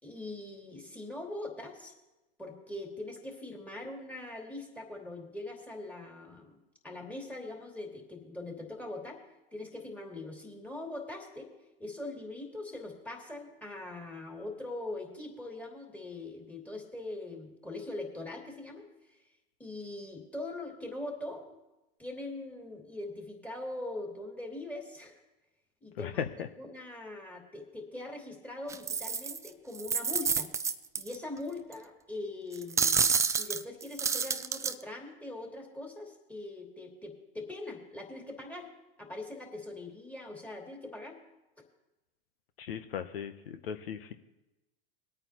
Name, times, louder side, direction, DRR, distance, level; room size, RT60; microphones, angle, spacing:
voice 1, 0.0-1.9 2.4-6.6 6.8-9.2 9.5-11.5 11.8-19.2 19.6-21.4 22.0-25.2 25.8-26.2 26.6-30.5 30.9-38.7 39.0-41.2, left 2 dB, 5° left, 1 dB, 2.7 m, -42 dB
sound 1, 28.7-29.5 29.7-31.2 31.7-31.8 32.5-34.7, right 6 dB, 10° right, 0.4 m, -29 dB
voice 2, 42.6-44.2, left 8 dB, 75° left, 10 dB, 0.9 m, -37 dB
21.0 x 8.9 x 3.0 m, 1.0 s
hypercardioid pair, 100°, 29 cm